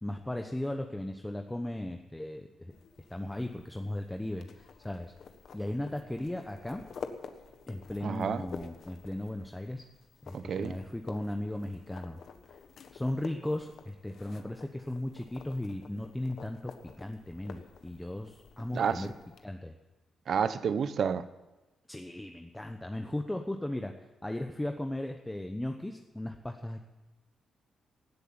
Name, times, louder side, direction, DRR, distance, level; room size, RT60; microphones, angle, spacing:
voice 1, 0.0-2.7 3.1-5.1 5.5-6.8 7.7-9.8 10.2-12.2 12.9-19.1 19.4-19.7 21.9-23.9 24.2-26.8, left 1 dB, 10° left, 0.9 m, -36 dB
sound 1, 2.7-19.4, left 6 dB, 60° left, 1.3 m, -49 dB
voice 2, 8.0-8.4 10.3-10.7 18.7-19.1 20.3-21.2, right 7 dB, 60° right, 0.8 m, -30 dB
17.0 x 8.1 x 8.8 m
cardioid pair, 105°, 0 cm